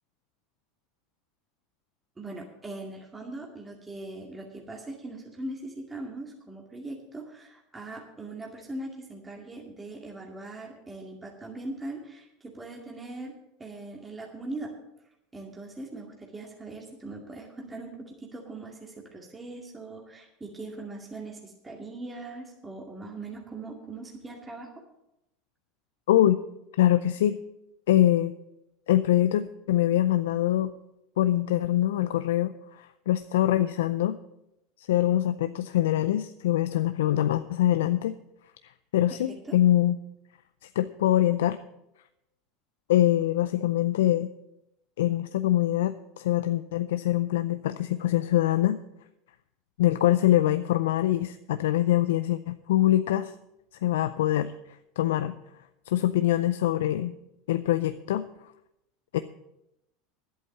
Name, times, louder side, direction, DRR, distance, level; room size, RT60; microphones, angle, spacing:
voice 1, 2.2-13.3 13.6-14.7 15.3-24.7 39.1-39.6, right 2 dB, 15° right, -1 dB, 2.2 m, -40 dB
voice 2, 26.1-26.4 26.8-27.4 27.9-28.3 28.9-30.7 31.2-34.2 34.8-38.2 38.9-40.0 40.8-41.6 42.9-44.3 45.0-48.8 49.8-53.3 53.8-54.5 55.0-55.3 55.9-57.1 57.5-58.3 59.1-59.2, left 13 dB, 85° left, 11 dB, 0.4 m, -24 dB
11.0 x 8.2 x 7.3 m, 0.87 s
hypercardioid pair, 100°, 0 cm